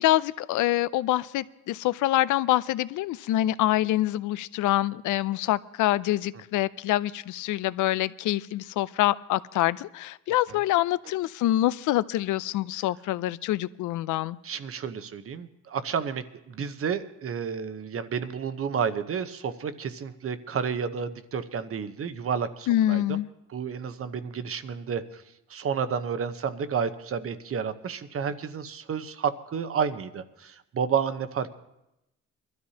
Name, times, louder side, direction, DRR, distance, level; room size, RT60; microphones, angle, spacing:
voice 1, 0.0-14.4 22.7-23.3, left 15 dB, 80° left, 17 dB, 0.5 m, -25 dB
voice 2, 14.4-23.2 23.5-25.0 25.5-31.5, right 6 dB, 50° right, 11 dB, 0.9 m, -31 dB
22.5 x 13.0 x 2.9 m, 0.88 s
cardioid pair, 90°, 30 cm